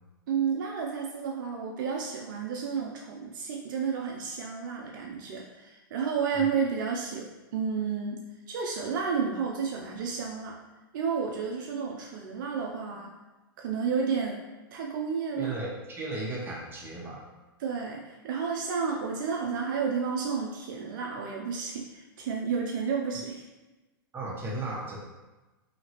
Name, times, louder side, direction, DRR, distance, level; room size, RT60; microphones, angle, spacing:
voice 1, 0.3-7.3 7.5-8.2 8.5-10.6 10.9-13.1 13.6-14.4 14.7-15.6 17.6-23.4, right 6 dB, 60° right, -1 dB, 0.5 m, -31 dB
voice 2, 15.4-17.2 24.1-25.0, right 2 dB, 20° right, -4 dB, 0.9 m, -35 dB
2.8 x 2.8 x 2.9 m, 1.1 s
hypercardioid pair, 110°, 12 cm